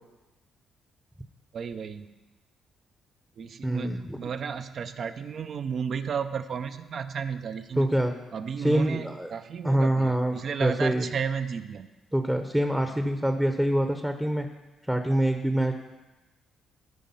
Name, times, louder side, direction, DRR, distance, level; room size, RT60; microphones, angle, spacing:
voice 1, 1.5-2.1 3.4-7.9 8.3-11.9, right 6 dB, 55° right, 10 dB, 0.6 m, -33 dB
voice 2, 3.6-4.2 7.8-8.1 8.6-9.3 9.6-10.3 10.6-11.1 12.1-14.5 14.9-15.7, right 1 dB, 5° right, 6 dB, 0.7 m, -25 dB
13.0 x 5.1 x 5.6 m, 1.1 s
cardioid pair, 90°, 0 cm